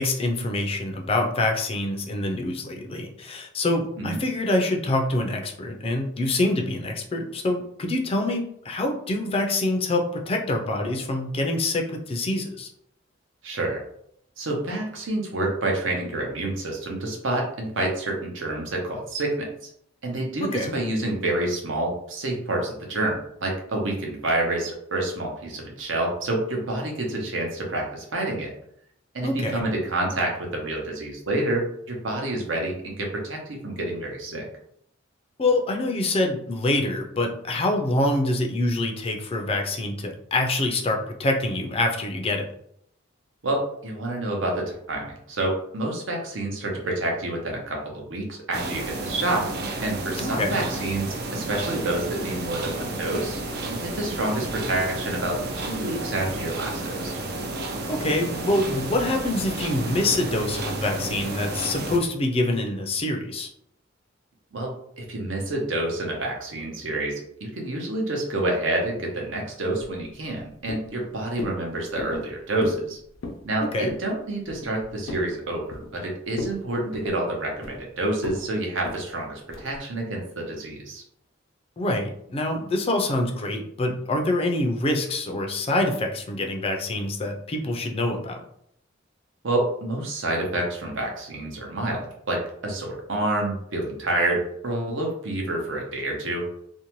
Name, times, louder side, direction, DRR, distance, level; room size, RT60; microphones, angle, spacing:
voice 1, 0.0-12.7 20.5-20.7 29.2-29.6 35.4-42.5 50.2-50.6 57.9-63.5 73.7-73.9 81.8-88.4, left 2 dB, 30° left, 2 dB, 0.4 m, -25 dB
voice 2, 13.4-13.8 14.4-19.7 20.0-28.5 29.1-34.5 43.4-49.5 49.8-53.4 53.7-57.2 64.5-73.0 73.4-81.0 89.4-96.5, right 2 dB, 70° right, 0 dB, 0.8 m, -28 dB
sound 1, 48.5-62.0, right 2 dB, 55° right, 0.4 m, -31 dB
sound 2, 70.0-70.4 70.7-71.0 71.4-71.6 72.0-72.3 72.6-72.9 73.1-73.5 73.9-74.1 74.5-75.3 75.7-76.1 76.3-76.6 76.9-77.8 78.2-78.4 78.8-79.1 79.5-79.8, left 2 dB, 85° left, 0.5 m, -35 dB
2.6 x 2.1 x 2.9 m, 0.70 s
head